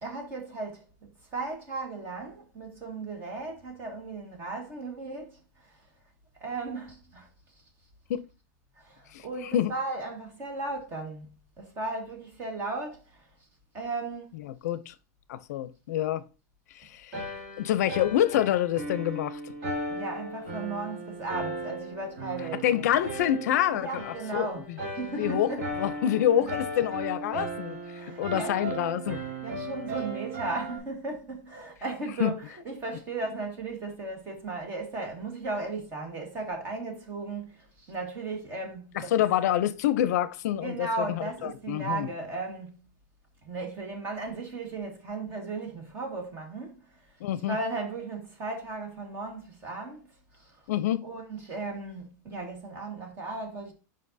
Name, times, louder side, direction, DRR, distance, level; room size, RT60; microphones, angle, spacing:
voice 1, 0.0-0.8 1.3-5.4 6.4-7.3 8.8-11.3 11.6-13.0 13.7-14.3 19.9-22.8 23.7-24.6 24.9-25.6 26.4-26.5 27.9-28.6 29.1-39.2 40.5-42.7 43.4-46.8 47.5-50.1 50.4-50.5 51.0-53.7, right 3 dB, 25° right, 1.6 m, -36 dB
voice 2, 14.5-14.9 15.3-16.2 16.8-17.2 17.6-19.5 22.6-24.5 25.1-27.8 28.2-29.2 32.2-32.3 38.9-42.1 47.2-47.6 50.7-51.0, left 11 dB, 70° left, 0.5 m, -27 dB
sound 1, 17.1-30.8, right 2 dB, 45° right, 2.7 m, -37 dB
7.6 x 5.2 x 2.6 m
supercardioid pair, 180°, 9 cm